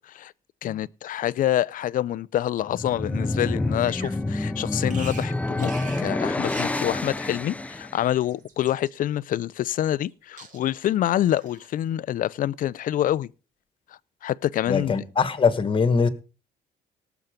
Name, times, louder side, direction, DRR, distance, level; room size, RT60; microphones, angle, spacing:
voice 1, 0.6-13.3 14.2-15.0, left 12 dB, 55° left, 0.5 m, -26 dB
sound 1, 2.6-8.0, left 2 dB, 10° left, 0.6 m, -28 dB
Bird vocalization bird call bird song, 3.8-4.2 4.9-5.3 5.6-6.1 6.4-6.9 7.9-8.9 9.7-10.1 10.4-10.8 11.3-11.7, right 4 dB, 50° right, 3.0 m, -44 dB
voice 2, 14.7-16.1, left 5 dB, 30° left, 1.6 m, -22 dB
18.5 x 7.1 x 5.1 m
cardioid pair, 110°, 17 cm